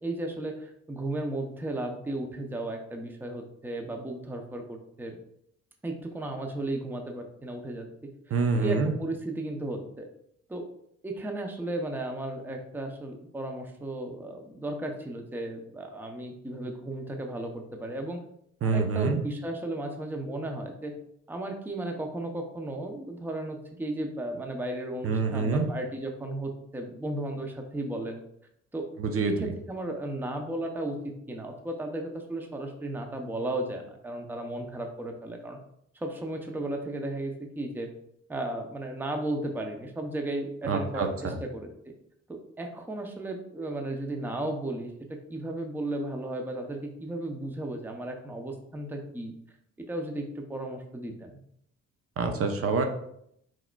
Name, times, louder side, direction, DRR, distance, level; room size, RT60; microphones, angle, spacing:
voice 1, 0.0-5.2 5.8-10.1 10.5-10.7 11.0-18.2 18.6-20.9 21.3-28.2 28.7-28.9 29.3-35.6 35.9-37.9 38.3-41.7 42.3-49.3 49.9-51.4, right 1 dB, 5° right, 4 dB, 0.6 m, -35 dB
voice 2, 8.3-8.9 18.6-19.2 25.0-25.7 29.0-29.3 40.7-41.4 52.2-52.8, right 4 dB, 50° right, 6 dB, 0.6 m, -26 dB
4.7 x 4.3 x 2.2 m, 0.72 s
cardioid pair, 90°, 30 cm